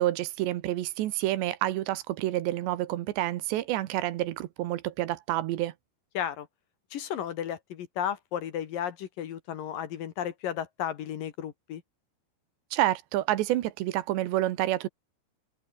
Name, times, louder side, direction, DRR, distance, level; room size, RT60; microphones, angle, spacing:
voice 1, 0.0-5.7 12.7-14.9, right 15 dB, 85° right, 3.4 m, -28 dB
voice 2, 6.1-6.5 6.9-11.8, left 9 dB, 60° left, 2.9 m, -34 dB
omnidirectional pair, 5.0 m